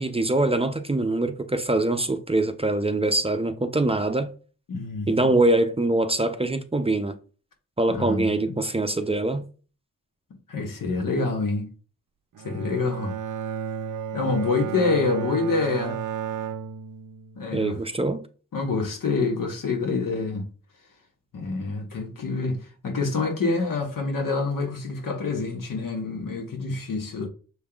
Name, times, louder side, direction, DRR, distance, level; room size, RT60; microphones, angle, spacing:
voice 1, 0.0-4.3 5.1-7.2 7.8-9.5 17.5-18.2, right 2 dB, 20° right, 0.5 m, -23 dB
voice 2, 4.7-5.4 7.9-8.3 10.5-11.7 12.4-13.1 14.1-16.0 17.4-17.8 18.5-20.5 21.3-27.3, left 3 dB, 75° left, 1.3 m, -27 dB
Bowed string instrument, 12.3-17.6, right 8 dB, 65° right, 0.5 m, -33 dB
6.3 x 3.5 x 2.3 m
cardioid pair, 50°, 33 cm